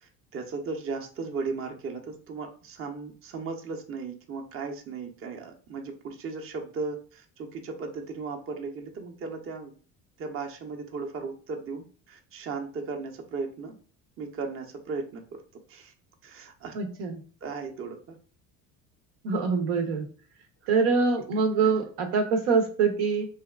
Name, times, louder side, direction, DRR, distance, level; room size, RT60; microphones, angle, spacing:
voice 1, 0.0-9.7 10.2-13.7 14.2-15.4 15.7-15.9 16.2-16.7 17.4-18.2, right 4 dB, 30° right, 4 dB, 0.6 m, -36 dB
voice 2, 16.7-17.2 19.2-20.0 20.7-23.3, right 5 dB, 70° right, 4 dB, 0.7 m, -24 dB
2.8 x 2.3 x 2.2 m, 0.40 s
hypercardioid pair, 60°, 47 cm